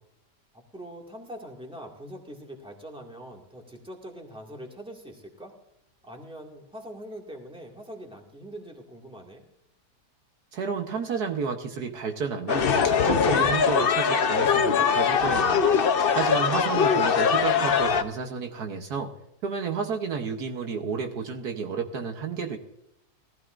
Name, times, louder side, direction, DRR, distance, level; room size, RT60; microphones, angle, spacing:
voice 1, 0.7-5.5 6.0-9.4 15.9-16.9, equal, 5° right, 1 dB, 2.0 m, -43 dB
voice 2, 10.5-15.6 16.1-19.1 19.4-22.6, right 5 dB, 70° right, 4 dB, 1.6 m, -31 dB
sound 1, 12.5-18.0, left 6 dB, 50° left, 0.7 m, -22 dB
19.0 x 14.5 x 2.6 m, 0.81 s
omnidirectional pair, 1.8 m